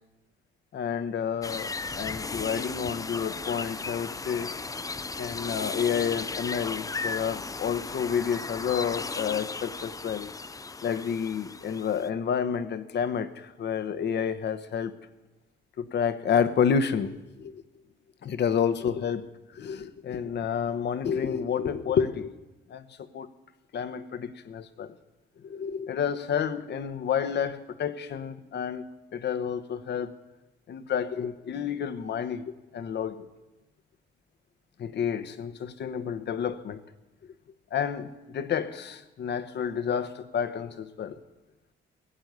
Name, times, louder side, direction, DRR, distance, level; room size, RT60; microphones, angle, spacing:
voice 1, 0.7-4.5 5.2-10.3 10.8-14.9 15.8-17.6 18.2-19.3 19.5-22.3 22.7-22.8 23.1-23.3 23.7-24.9 25.4-28.8 29.1-30.1 30.7-33.2 34.8-36.8 37.7-41.2, left 7 dB, 60° left, 12 dB, 1.1 m, -29 dB
sound 1, 1.4-12.1, left 3 dB, 15° left, 0.5 m, -36 dB
16.5 x 7.1 x 9.4 m, 1.0 s
cardioid pair, 90°, 20 cm